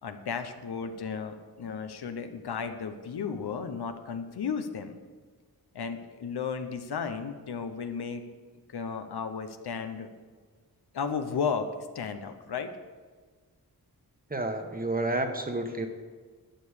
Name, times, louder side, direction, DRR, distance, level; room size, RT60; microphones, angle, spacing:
voice 1, 0.0-5.0 5.7-8.2 8.7-10.1 10.9-12.7, left 6 dB, 90° left, 8 dB, 0.9 m, -34 dB
voice 2, 14.3-15.9, right 2 dB, 25° right, 5 dB, 1.1 m, -30 dB
11.5 x 7.0 x 6.5 m, 1.5 s
wide cardioid pair, 120°, 38 cm